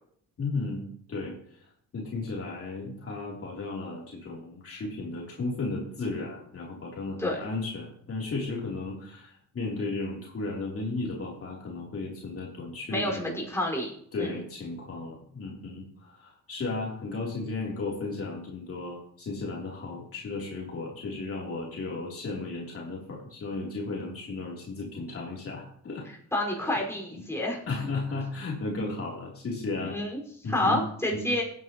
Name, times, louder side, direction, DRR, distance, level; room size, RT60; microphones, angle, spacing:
voice 1, 0.4-1.6 1.9-13.4 14.1-26.0 27.7-30.0 30.4-30.8 31.1-31.3, left 3 dB, 50° left, -3 dB, 3.4 m, -34 dB
voice 2, 12.9-13.9 14.2-14.3 26.3-27.6 29.8-30.2 30.5-31.4, left 1 dB, 10° left, -1 dB, 5.1 m, -28 dB
17.0 x 9.6 x 3.0 m, 0.65 s
cardioid pair, 90°, 30 cm